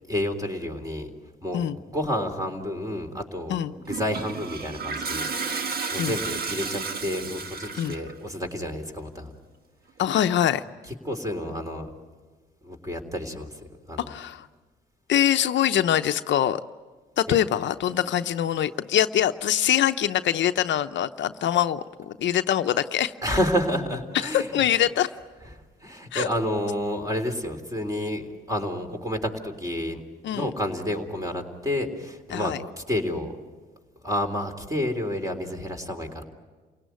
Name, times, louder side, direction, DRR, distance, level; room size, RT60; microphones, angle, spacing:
voice 1, 0.1-1.1 1.4-9.3 11.0-11.9 12.6-13.6 13.9-14.1 17.3-17.4 23.2-24.6 25.5-30.0 30.3-33.3 34.0-36.2, equal, 15° right, 5 dB, 3.6 m, -30 dB
Toilet flush, 3.9-8.1, right 4 dB, 50° right, 1.5 m, -32 dB
voice 2, 10.0-10.6 14.1-14.5 15.1-16.6 17.2-23.4 24.2-25.1 26.1-26.3 30.2-30.5 32.3-32.6, left 11 dB, 65° left, 9 dB, 0.7 m, -24 dB
29.0 x 17.5 x 9.3 m, 1.4 s
cardioid pair, 90°, 20 cm